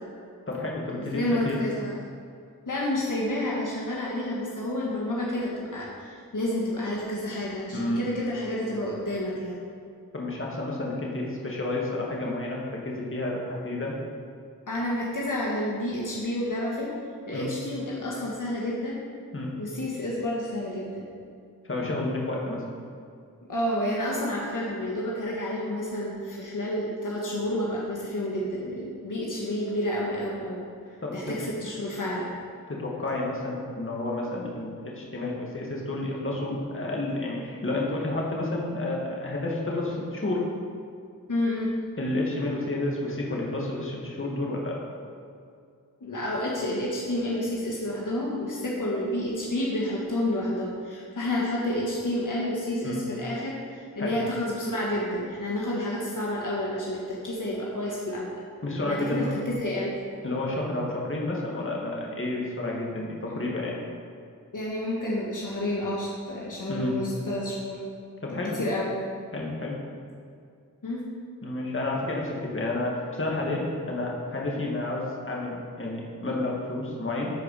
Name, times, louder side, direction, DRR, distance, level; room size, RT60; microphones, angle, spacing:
voice 1, 0.5-1.6 7.7-8.1 10.1-13.9 17.3-17.5 19.3-19.5 21.7-22.6 31.0-31.3 32.7-40.4 42.0-44.8 52.8-53.0 54.0-54.2 58.6-59.3 60.2-63.8 66.7-66.9 68.2-68.6 69.3-69.7 71.4-77.3, left 2 dB, 35° left, -3 dB, 2.0 m, -30 dB
voice 2, 1.1-2.0 2.6-9.6 14.7-16.9 17.3-19.0 19.6-21.1 23.5-30.6 30.9-32.3 41.3-41.7 46.0-58.3 58.8-59.9 64.5-67.8 68.5-68.9 70.8-71.1, left 1 dB, 60° left, -4 dB, 1.5 m, -30 dB
12.0 x 4.8 x 4.9 m, 2.3 s
cardioid pair, 50°, 35 cm